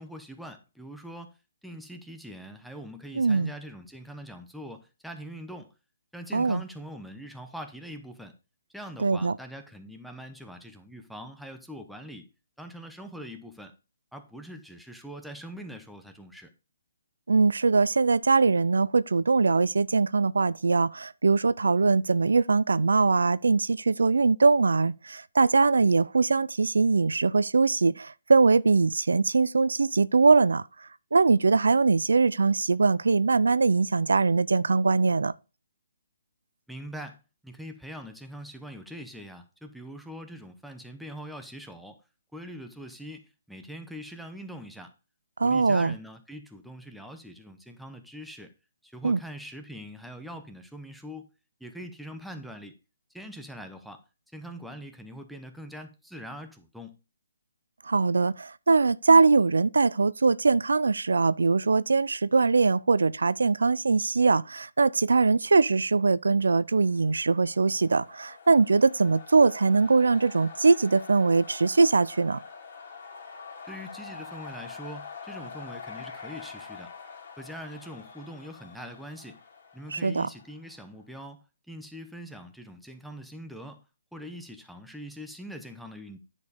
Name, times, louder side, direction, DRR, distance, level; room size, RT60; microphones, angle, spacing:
voice 1, 0.0-1.3 1.6-5.7 6.1-8.4 8.7-12.3 12.6-13.7 14.1-16.5 36.7-42.0 42.3-44.9 45.4-48.5 48.8-51.3 51.6-52.8 53.1-54.0 54.3-57.0 73.7-76.9 77.4-79.4 79.7-83.8 84.1-86.2, equal, ahead, 0.7 m, -43 dB
voice 2, 3.1-3.5 6.3-6.6 9.0-9.4 17.3-35.3 45.4-45.9 49.0-49.2 57.8-72.4 79.9-80.3, right 4 dB, 90° right, 0.4 m, -22 dB
sound 1, 67.0-80.8, left 5 dB, 45° left, 2.5 m, -45 dB
9.7 x 4.3 x 5.0 m
hypercardioid pair, 160°, 0 cm